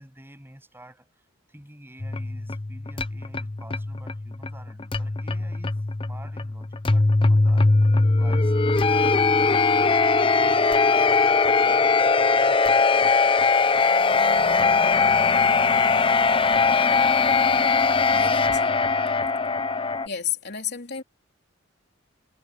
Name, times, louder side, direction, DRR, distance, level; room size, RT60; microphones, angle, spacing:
voice 1, 0.0-5.8 6.0-13.3, right 1 dB, 10° right, 7.6 m, -49 dB
sound 1, 2.0-20.1, left 4 dB, 25° left, 0.6 m, -21 dB
voice 2, 18.1-18.8 20.1-21.0, left 8 dB, 55° left, 3.7 m, -32 dB
head